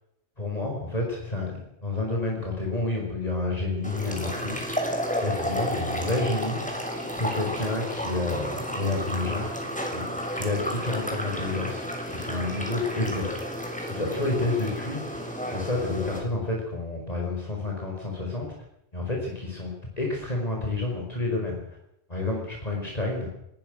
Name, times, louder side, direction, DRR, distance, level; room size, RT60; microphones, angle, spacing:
voice 1, 0.4-4.7 5.2-6.6 7.1-9.5 9.9-10.0 10.3-13.3 13.9-18.5 18.9-21.8 22.1-23.3, left 2 dB, 35° left, -1 dB, 5.2 m, -29 dB
sound 1, 3.8-16.2, equal, 5° left, 6.4 m, -32 dB
21.0 x 19.5 x 6.3 m, 0.80 s
omnidirectional pair, 1.1 m